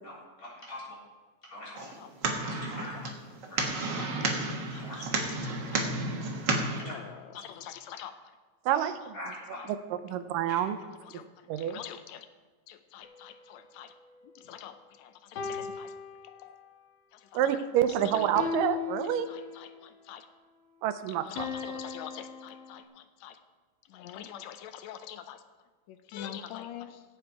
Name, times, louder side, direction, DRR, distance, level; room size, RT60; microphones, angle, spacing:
voice 1, 0.0-1.0 1.4-1.9 2.4-2.9 3.5-3.7 4.7-5.0 6.5-6.9 7.3-7.5 9.1-9.7 10.5-10.6, left 1 dB, 25° left, -5 dB, 3.8 m, -43 dB
sound 1, 1.8-6.8, right 3 dB, 50° right, 1.4 m, -32 dB
voice 2, 2.7-3.1 3.9-4.4 4.7-4.8 5.2-5.9 6.7-8.1 8.8-8.9 9.6-9.7 11.0-11.3 11.6-12.3 12.7-13.9 14.3-15.9 16.2-16.6 17.1-17.6 18.0-18.5 19.3-20.3 21.1-23.4 23.9-25.4 25.9-27.0, left 10 dB, 80° left, 9 dB, 1.6 m, -45 dB
voice 3, 8.7-9.1 10.0-10.8 11.5-11.8 17.3-19.3 20.8-21.5, right 10 dB, 85° right, 10 dB, 2.4 m, -28 dB
sound 2, 13.0-14.8 15.4-16.8 18.4-19.8 21.4-22.8, left 6 dB, 60° left, 1.2 m, -39 dB
16.0 x 8.3 x 4.6 m, 1.4 s
omnidirectional pair, 3.8 m